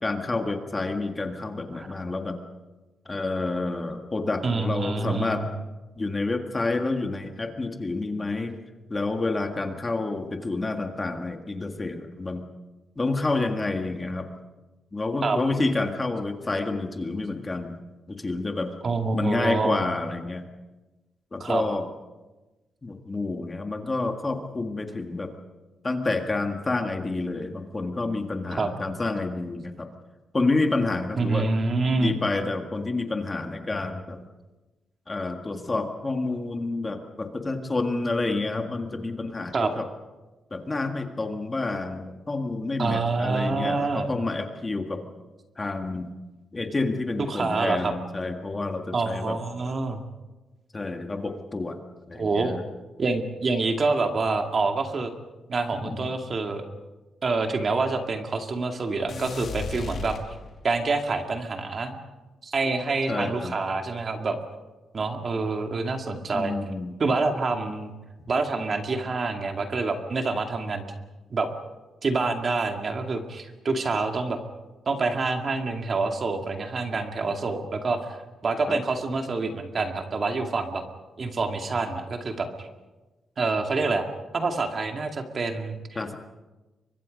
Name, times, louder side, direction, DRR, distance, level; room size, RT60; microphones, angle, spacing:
voice 1, 0.0-2.4 3.0-5.5 6.0-8.6 8.9-12.4 13.0-14.3 14.9-17.8 18.1-18.7 19.1-20.4 21.3-21.9 22.8-25.3 25.8-29.9 30.3-31.5 32.0-34.2 35.1-39.8 40.5-45.0 45.6-46.1 46.5-49.4 50.7-51.8 52.1-52.6 55.7-56.0 63.1-63.5 66.3-67.0 78.7-78.8 85.9-86.1, left 3 dB, 20° left, 5 dB, 1.7 m, -29 dB
voice 2, 4.4-5.4 15.2-15.4 18.8-19.8 21.4-21.6 28.5-28.7 31.2-32.1 39.5-39.7 42.8-44.1 47.2-47.9 48.9-50.0 52.1-52.6 53.0-55.1 55.5-56.7 57.2-60.2 60.6-62.0 62.4-64.4 64.9-66.5 67.0-67.9 68.3-70.9 71.3-71.5 72.0-74.4 74.9-78.0 78.4-80.8 81.2-82.7 83.4-84.0 84.3-86.1, right 3 dB, 35° right, 4 dB, 2.2 m, -27 dB
sound 1, 59.1-60.9, left 4 dB, 50° left, 2.7 m, -35 dB
29.5 x 24.0 x 5.3 m, 1.2 s
wide cardioid pair, 170°, 0 cm